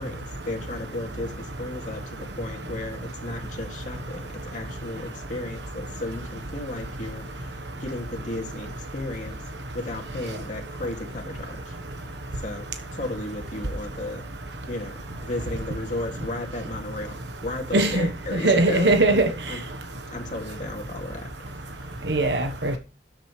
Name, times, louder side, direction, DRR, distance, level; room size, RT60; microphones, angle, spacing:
voice 1, 0.0-9.4 9.7-11.7 12.4-14.3 14.6-19.2 19.5-19.6 20.1-21.5, left 2 dB, 45° left, 2.4 m, -34 dB
voice 2, 17.7-19.3 22.1-22.8, right 2 dB, 70° right, 1.2 m, -21 dB
13.0 x 7.8 x 3.2 m
head